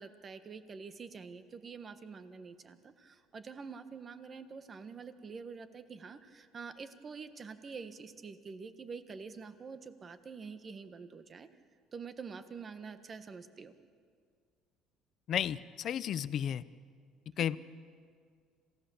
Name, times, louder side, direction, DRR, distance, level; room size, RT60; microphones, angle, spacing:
voice 1, 0.0-11.5 11.9-13.7 17.4-17.5, right 5 dB, 30° right, 10 dB, 1.4 m, -46 dB
voice 2, 15.3-16.6 17.4-17.6, left 9 dB, 50° left, 16 dB, 0.7 m, -33 dB
27.0 x 17.0 x 7.1 m, 2.1 s
cardioid pair, 120°, 0 cm